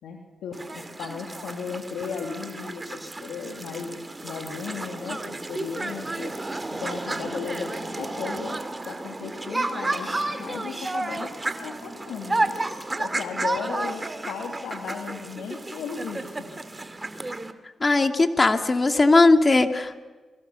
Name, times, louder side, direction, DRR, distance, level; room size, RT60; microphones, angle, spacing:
voice 1, 0.0-6.3 6.7-8.6 8.9-11.3 11.6-12.6 13.0-16.5, left 6 dB, 80° left, 2 dB, 2.6 m, -35 dB
sound 1, 0.5-17.5, right 2 dB, 25° right, 2.5 m, -32 dB
voice 2, 17.8-20.0, left 3 dB, 40° left, 6 dB, 2.5 m, -19 dB
28.0 x 23.5 x 7.1 m, 1.3 s
hypercardioid pair, 40°, 0 cm